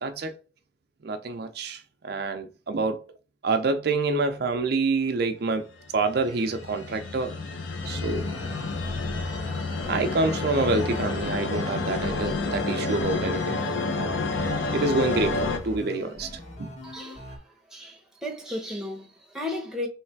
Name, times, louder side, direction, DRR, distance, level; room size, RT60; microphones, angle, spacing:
voice 1, 0.0-0.4 1.0-3.0 3.4-5.7 5.9-7.3 7.9-8.3 9.9-13.6 14.7-16.3 16.6-16.7, right 3 dB, 55° right, 0.5 m, -27 dB
sound 1, 5.9-15.6, left 3 dB, 85° left, 0.8 m, -29 dB
sound 2, 7.8-17.4, left 1 dB, 40° left, 1.6 m, -41 dB
voice 2, 16.8-17.4 17.7-19.9, left 1 dB, 5° right, 0.9 m, -35 dB
3.2 x 3.1 x 4.5 m
head